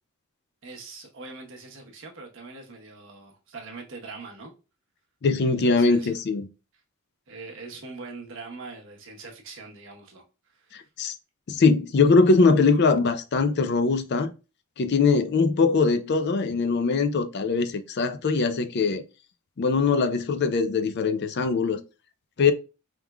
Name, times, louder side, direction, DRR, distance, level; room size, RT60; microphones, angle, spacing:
voice 1, 0.6-4.5 5.4-6.1 7.3-10.2 10.5-10.9, right 3 dB, 60° right, 1.0 m, -42 dB
voice 2, 5.2-6.5 10.7-11.2 11.5-14.3 14.8-19.0 19.6-21.8 22.4-22.5, left 4 dB, 50° left, 0.4 m, -22 dB
4.6 x 3.6 x 2.3 m
head